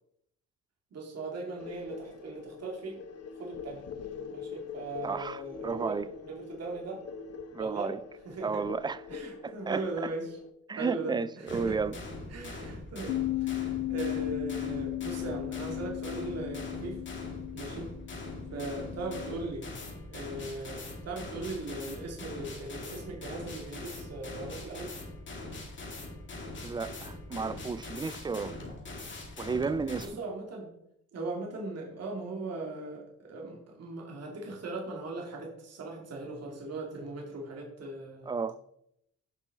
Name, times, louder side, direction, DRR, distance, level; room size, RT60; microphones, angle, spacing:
voice 1, 0.9-3.0 3.4-3.9 4.3-7.0 7.6-7.9 8.2-8.6 9.1-10.4 10.8-11.9 12.3-17.0 17.5-17.9 18.5-19.7 20.1-24.9 30.0-30.7 31.1-38.3, right 2 dB, 55° right, 2.5 m, -39 dB
sound 1, 1.6-10.5, left 6 dB, 55° left, 0.9 m, -44 dB
voice 2, 5.0-6.1 7.5-8.0 8.4-9.0 9.4-9.8 10.7-11.9 26.6-28.5 29.4-30.2 38.3-38.6, right 4 dB, 15° right, 0.4 m, -33 dB
sound 2, 11.5-30.1, left 2 dB, 40° left, 2.5 m, -42 dB
Bass guitar, 13.1-19.3, left 18 dB, 80° left, 0.5 m, -36 dB
9.8 x 6.1 x 4.0 m
cardioid pair, 90°, 30 cm